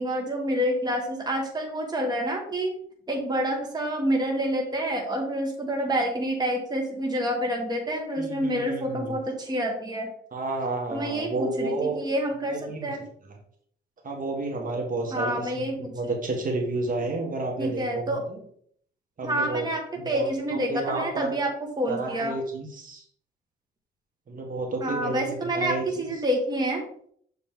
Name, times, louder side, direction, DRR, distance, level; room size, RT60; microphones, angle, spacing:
voice 1, 0.0-2.8 3.1-10.1 10.9-13.0 15.1-16.1 17.6-18.2 19.2-22.4 24.8-26.8, right 1 dB, 20° right, 1 dB, 1.4 m, -28 dB
voice 2, 8.2-9.1 10.3-12.0 12.5-12.9 14.0-18.4 19.2-19.7 20.0-21.3 21.9-23.0 24.3-25.8, right 2 dB, 45° right, 1 dB, 1.5 m, -31 dB
7.1 x 4.1 x 3.6 m, 0.62 s
cardioid pair, 90°, 20 cm